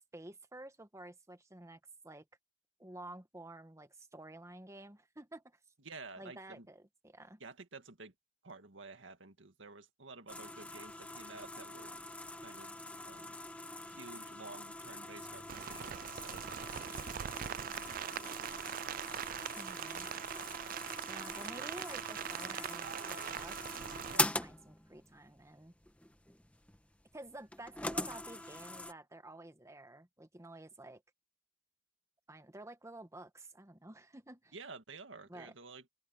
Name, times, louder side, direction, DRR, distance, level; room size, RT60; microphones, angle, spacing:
voice 1, 0.1-2.3 2.8-5.6 6.2-6.8 7.0-7.4 19.6-20.1 21.1-25.7 27.1-31.0 32.3-34.5 35.3-35.5, right 1 dB, 15° right, 1.2 m, -51 dB
voice 2, 5.8-6.7 7.4-8.1 8.4-11.9 12.4-13.4 13.9-17.1 17.4-19.4 24.1-24.3 34.5-35.9, right 3 dB, 80° right, 2.0 m, -52 dB
sound 1, 10.3-28.9, left 2 dB, 5° left, 1.4 m, -43 dB
sound 2, 14.9-20.4, equal, 40° left, 7.0 m, -68 dB
Rain, 15.5-24.2, right 9 dB, 45° right, 0.3 m, -42 dB
open air
head